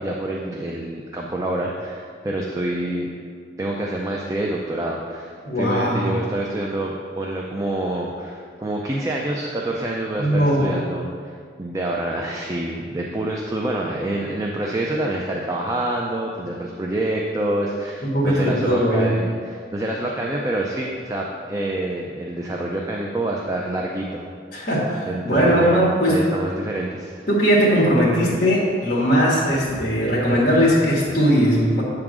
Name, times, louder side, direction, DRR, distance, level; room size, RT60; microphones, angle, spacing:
voice 1, 0.0-3.1 3.6-11.3 11.6-24.3 24.6-24.7 25.1-25.8 26.0-27.2, right 1 dB, 15° right, -2 dB, 0.4 m, -27 dB
voice 2, 5.4-6.1 10.2-10.7 18.0-19.1 24.5-26.1 27.3-31.8, equal, 45° left, -7 dB, 1.5 m, -19 dB
7.7 x 3.7 x 6.1 m, 2.1 s
head